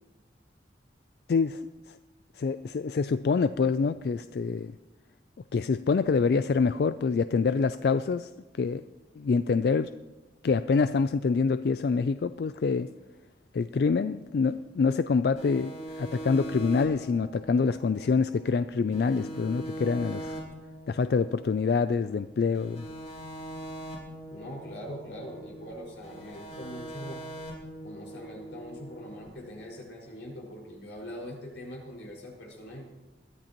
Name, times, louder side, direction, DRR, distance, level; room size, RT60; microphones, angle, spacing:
voice 1, 1.3-1.6 1.9-2.0 2.4-4.7 5.5-8.3 8.6-8.8 9.2-9.9 10.4-12.9 13.5-15.7 16.0-20.4 20.9-22.9, left 5 dB, 60° left, 12 dB, 0.3 m, -26 dB
gross glitch, 15.4-18.6 18.9-22.2 22.5-25.7 26.0-29.3, right 1 dB, 40° left, 4.2 m, -42 dB
voice 2, 24.3-27.2 27.8-32.8, equal, 90° left, -2 dB, 5.2 m, -42 dB
21.5 x 13.5 x 3.0 m, 1.1 s
head